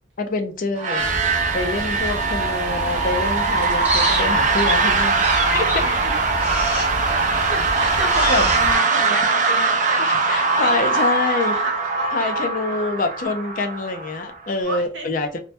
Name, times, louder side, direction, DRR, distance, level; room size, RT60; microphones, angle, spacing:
voice 1, 0.2-1.1 1.5-5.2 5.5-5.9 8.3-8.5 10.0-11.6 12.1-15.4, left 3 dB, 45° left, 6 dB, 0.4 m, -25 dB
sound 1, 0.8-14.5, right 4 dB, 40° right, 0.3 m, -21 dB
sound 2, 1.0-8.8, equal, 10° right, 0.7 m, -28 dB
voice 2, 1.8-2.4 5.8-6.1 7.5-12.2 14.6-15.1, right 2 dB, 90° right, 3 dB, 0.8 m, -32 dB
2.1 x 2.1 x 2.7 m, 0.35 s
head